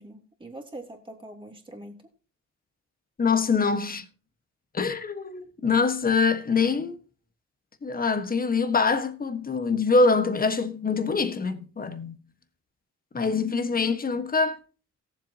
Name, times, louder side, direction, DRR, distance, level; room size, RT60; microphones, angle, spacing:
voice 1, 0.0-2.0, right 1 dB, 15° right, 3.1 m, -43 dB
voice 2, 3.2-4.0 4.7-7.0 7.8-12.2 13.1-14.6, left 4 dB, 30° left, 1.4 m, -24 dB
18.0 x 7.6 x 2.9 m
cardioid pair, 90°, 30 cm